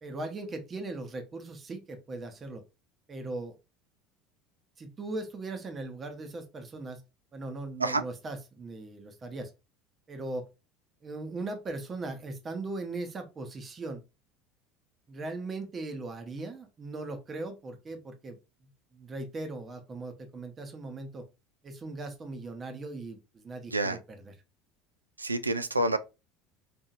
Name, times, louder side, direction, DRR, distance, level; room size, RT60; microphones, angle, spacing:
voice 1, 0.0-2.6 3.1-3.6 4.8-7.0 7.3-9.5 10.1-10.4 11.0-14.0 15.1-18.4 18.9-21.2 21.6-24.3, right 2 dB, 30° right, 0.9 m, -39 dB
voice 2, 25.2-26.0, right 2 dB, 90° right, 0.3 m, -27 dB
4.3 x 2.7 x 2.5 m
figure-of-eight pair, 70°, 0 cm